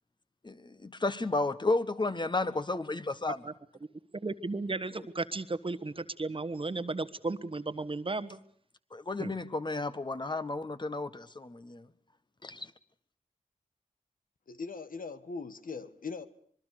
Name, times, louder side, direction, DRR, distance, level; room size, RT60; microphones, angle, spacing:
voice 1, 0.4-3.5 8.9-11.9 12.4-12.7, left 2 dB, 30° left, 1.6 m, -32 dB
voice 2, 4.1-8.4 9.2-9.3, right 3 dB, 40° right, 1.4 m, -35 dB
voice 3, 14.5-16.3, left 4 dB, 75° left, 1.6 m, -40 dB
25.5 x 22.0 x 6.6 m
wide cardioid pair, 80°, 14 cm